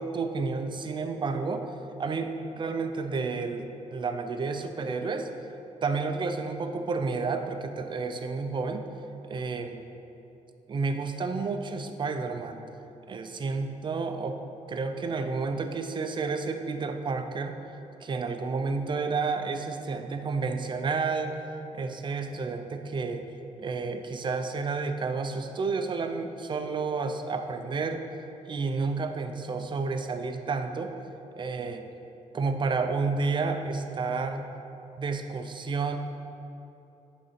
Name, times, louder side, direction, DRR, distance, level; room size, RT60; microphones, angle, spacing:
voice 1, 0.0-1.6 2.0-5.3 5.8-8.8 9.2-9.8 10.7-12.7 13.1-14.4 14.7-17.6 18.0-21.4 21.7-23.3 23.6-28.0 28.5-30.9 31.4-31.8 32.3-34.5 35.0-36.0, right 4 dB, 35° right, 7 dB, 0.5 m, -30 dB
10.5 x 4.0 x 4.2 m, 2.9 s
cardioid pair, 125°, 13 cm